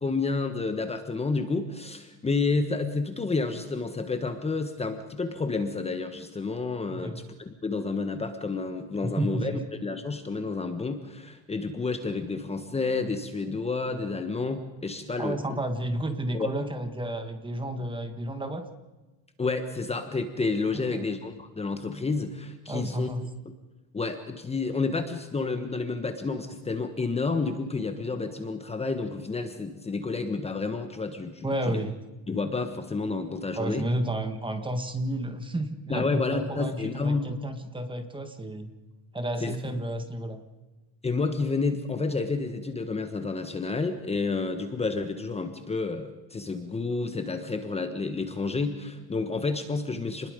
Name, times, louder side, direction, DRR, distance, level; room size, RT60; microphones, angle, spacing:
voice 1, 0.0-9.5 9.8-15.6 16.3-16.5 19.4-23.1 23.9-31.8 32.3-33.9 35.9-37.4 39.4-39.6 41.0-50.3, left 3 dB, 15° left, 7 dB, 1.4 m, -30 dB
voice 2, 6.9-7.2 9.0-9.6 15.2-18.7 20.7-21.1 22.7-23.2 31.4-32.0 33.5-38.7 39.1-40.4, right 1 dB, 15° right, 8 dB, 1.7 m, -31 dB
28.5 x 21.0 x 5.3 m, 1.1 s
cardioid pair, 140°, 39 cm